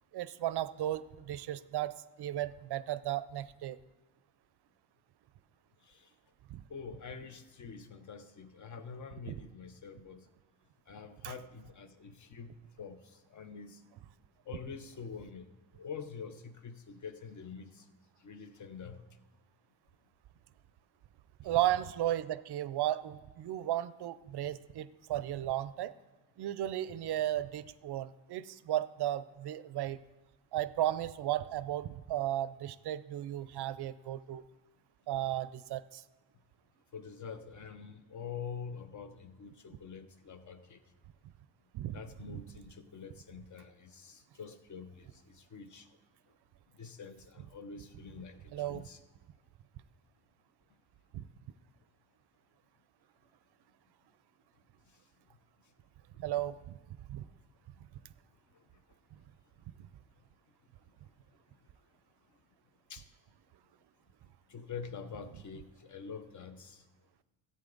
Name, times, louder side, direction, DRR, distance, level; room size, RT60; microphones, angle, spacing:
voice 1, 0.1-3.8 6.5-6.6 9.3-9.4 11.2-11.3 21.4-25.9 26.4-30.0 30.5-34.4 35.1-36.0 41.7-42.0 42.3-42.4 48.5-48.9 51.1-51.2 56.2-56.8 57.1-57.3, right 13 dB, 55° right, 16 dB, 0.5 m, -35 dB
voice 2, 6.7-10.3 10.9-12.5 12.8-13.0 13.3-13.8 14.5-15.5 15.8-17.8 18.2-19.0 36.9-40.8 41.9-45.9 46.8-49.0 62.9-63.0 64.5-66.8, left 6 dB, 40° left, 10 dB, 0.8 m, -46 dB
14.0 x 8.6 x 3.9 m, 1.2 s
cardioid pair, 115°, 48 cm